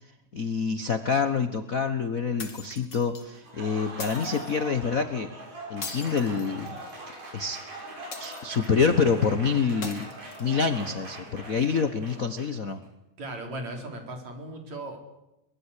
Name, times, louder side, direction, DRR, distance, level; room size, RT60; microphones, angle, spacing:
voice 1, 0.3-5.3 5.7-6.8 7.3-7.6 8.2-12.8, left 5 dB, 85° left, 9 dB, 0.7 m, -27 dB
sound 1, 2.4-3.2 4.0-4.6 5.8-7.0 8.1-8.8 9.8-10.8, left 4 dB, 35° left, 3.0 m, -41 dB
Applause, 3.3-12.7, right 1 dB, 85° right, 8.0 m, -42 dB
voice 2, 13.2-15.0, right 1 dB, 60° right, 4 dB, 5.4 m, -37 dB
23.0 x 21.5 x 8.4 m, 0.91 s
omnidirectional pair, 3.5 m